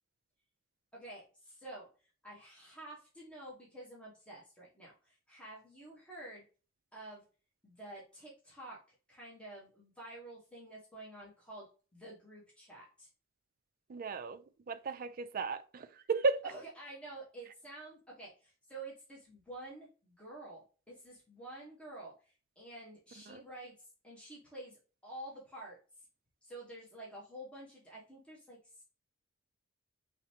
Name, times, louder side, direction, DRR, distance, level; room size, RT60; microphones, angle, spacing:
voice 1, 0.9-6.4 6.9-7.2 7.6-8.8 9.1-13.1 16.4-25.8 26.4-28.8, right 1 dB, 5° left, 1.1 m, -50 dB
voice 2, 13.9-14.4 14.7-16.4 23.3-23.4, right 4 dB, 45° right, 0.4 m, -34 dB
5.0 x 3.2 x 2.8 m
head